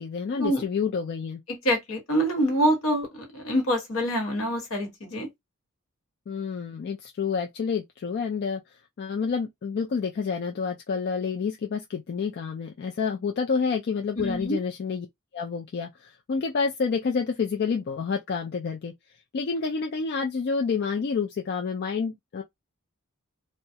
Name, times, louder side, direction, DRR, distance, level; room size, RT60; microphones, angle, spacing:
voice 1, 0.0-1.4 6.3-15.1 15.3-18.9 19.3-22.4, left 5 dB, 50° left, 0.4 m, -29 dB
voice 2, 1.6-5.3 14.2-14.6, equal, 75° left, 1.2 m, -25 dB
2.3 x 2.0 x 2.7 m
head